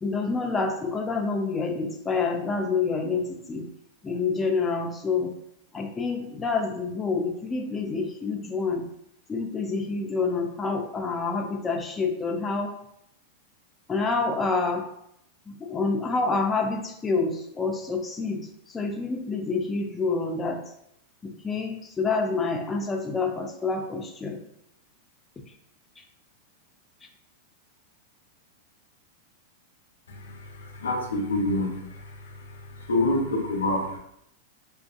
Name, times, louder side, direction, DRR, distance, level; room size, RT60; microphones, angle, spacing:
voice 1, 0.0-3.7 4.0-5.3 5.7-8.9 9.3-12.7 13.9-14.9 15.5-20.7 21.2-24.5, left 4 dB, 15° left, 2 dB, 0.4 m, -28 dB
voice 2, 30.6-31.8 32.9-34.0, left 2 dB, 85° left, 3 dB, 0.5 m, -26 dB
2.5 x 2.5 x 2.3 m, 0.76 s
hypercardioid pair, 105°, 0 cm